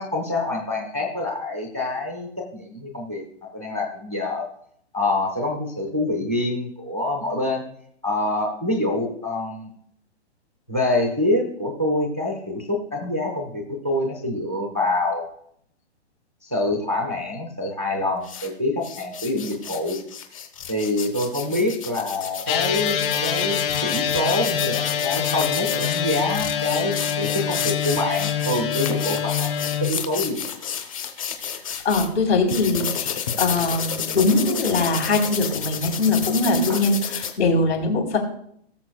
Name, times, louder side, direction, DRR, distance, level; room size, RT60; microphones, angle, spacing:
voice 1, 0.0-4.5 4.9-7.6 8.0-9.7 10.7-15.3 16.4-20.0 20.7-29.5 29.8-30.4 36.7-36.8, left 2 dB, 15° right, 0 dB, 0.4 m, -26 dB
sound 1, 18.2-18.5 18.8-32.1 32.5-37.3, left 8 dB, 30° left, 0.8 m, -31 dB
sound 2, 22.5-29.9, left 8 dB, 60° left, 3.6 m, -25 dB
voice 2, 31.8-38.2, left 3 dB, 75° left, 2 dB, 3.6 m, -22 dB
18.0 x 6.9 x 2.2 m, 0.68 s
hypercardioid pair, 170°, 34 cm